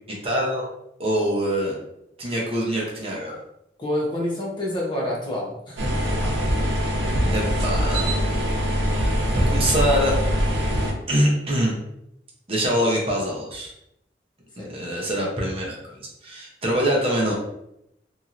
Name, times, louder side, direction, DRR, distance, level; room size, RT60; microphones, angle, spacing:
voice 1, 0.1-0.7 1.0-1.7 2.2-3.4 7.3-8.2 8.8-9.1 9.5-10.1 11.1-11.8 12.5-13.7 14.6-17.3, equal, 30° right, -2 dB, 0.7 m, -24 dB
voice 2, 3.8-5.9 14.6-14.7, left 1 dB, 25° left, -3 dB, 0.7 m, -27 dB
sound 1, 5.8-10.9, equal, 90° right, 0.6 m, -23 dB
2.9 x 2.7 x 2.5 m, 0.80 s
head